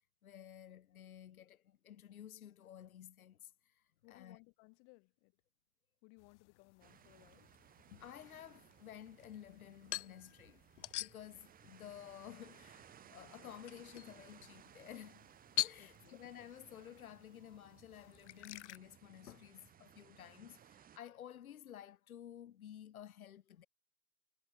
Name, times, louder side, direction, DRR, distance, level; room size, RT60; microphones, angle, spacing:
voice 1, 0.2-4.4 8.0-15.3 15.6-23.7, left 10 dB, 70° left, 3.1 m, -53 dB
voice 2, 4.0-5.3 6.0-7.5 15.8-16.2, left 40 dB or more, 35° left, 2.2 m, -63 dB
sound 1, 6.2-18.8, left 16 dB, 50° left, 2.7 m, -47 dB
sound 2, 6.8-21.0, right 9 dB, 20° right, 6.3 m, -62 dB
hypercardioid pair, 135°, 44 cm